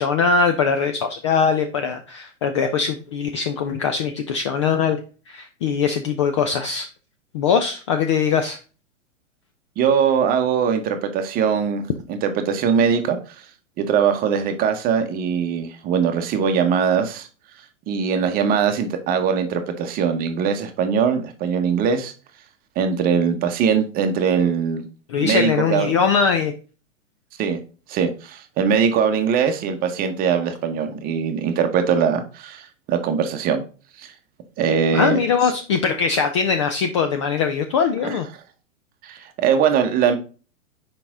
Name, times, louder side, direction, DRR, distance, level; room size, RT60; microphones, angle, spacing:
voice 1, 0.0-5.0 5.3-6.9 7.3-8.6 25.1-26.5 34.9-38.3, left 6 dB, 25° left, 7 dB, 0.4 m, -21 dB
voice 2, 9.8-13.2 13.8-17.3 17.9-22.1 22.8-24.8 25.2-25.9 27.4-27.6 27.9-33.6 34.0-34.1 34.6-35.2 38.0-38.2 39.0-40.2, right 7 dB, 20° right, 7 dB, 0.9 m, -21 dB
5.9 x 4.9 x 3.6 m, 0.36 s
figure-of-eight pair, 110°, 39 cm